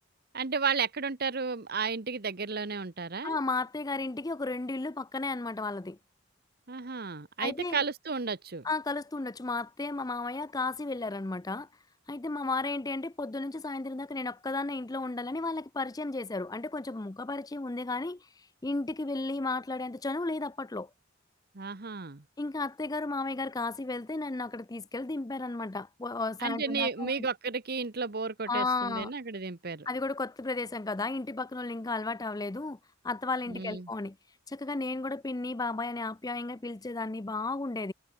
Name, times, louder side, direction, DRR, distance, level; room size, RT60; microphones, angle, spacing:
voice 1, 0.3-3.4 6.7-8.7 21.5-22.2 26.4-29.9 33.5-33.9, right 5 dB, 50° right, 1.2 m, -33 dB
voice 2, 3.2-6.0 7.4-7.8 8.6-11.7 12.1-18.3 18.6-20.9 22.4-27.3 28.5-29.1 29.9-32.8 33.0-34.2 34.5-37.9, left 3 dB, 20° left, 0.5 m, -34 dB
head